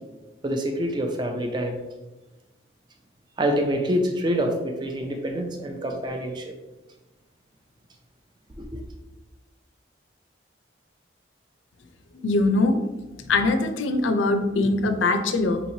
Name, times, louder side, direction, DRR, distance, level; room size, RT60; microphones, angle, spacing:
voice 1, 0.4-1.8 3.4-6.5 8.6-8.8, equal, 25° right, 3 dB, 0.4 m, -26 dB
voice 2, 12.2-12.8 13.2-15.6, left 2 dB, 85° left, 7 dB, 0.5 m, -22 dB
5.5 x 3.0 x 2.7 m, 1.1 s
head